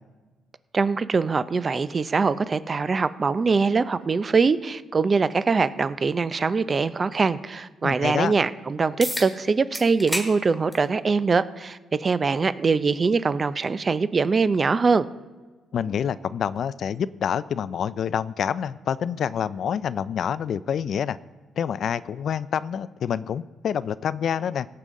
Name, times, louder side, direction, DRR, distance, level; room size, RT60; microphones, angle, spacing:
voice 1, 0.7-15.1, right 4 dB, 35° right, 15 dB, 0.5 m, -23 dB
voice 2, 7.8-8.4 15.7-21.2 21.6-24.7, left 8 dB, 60° left, 17 dB, 0.4 m, -27 dB
sound 1, 9.0-9.3 9.7-10.3 10.7-10.9 11.9-12.0 17.0-17.1, left 1 dB, 10° left, 2.2 m, -29 dB
17.0 x 7.7 x 3.7 m, 1.3 s
cardioid pair, 90°, 0 cm